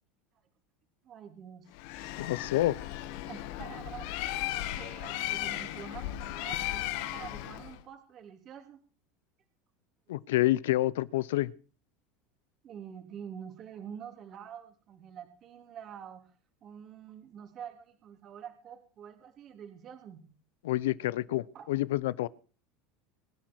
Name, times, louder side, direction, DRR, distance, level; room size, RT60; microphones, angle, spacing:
voice 1, 1.0-2.5 3.2-8.8 12.6-16.3 16.6-20.2 21.5-21.7, right 8 dB, 40° right, 3.4 m, -47 dB
Bird, 1.7-7.8, left 14 dB, 70° left, 1.6 m, -36 dB
voice 2, 2.2-2.8 10.1-11.5 20.6-22.3, left 16 dB, 90° left, 0.7 m, -28 dB
24.5 x 10.5 x 4.8 m
supercardioid pair, 130°, 0 cm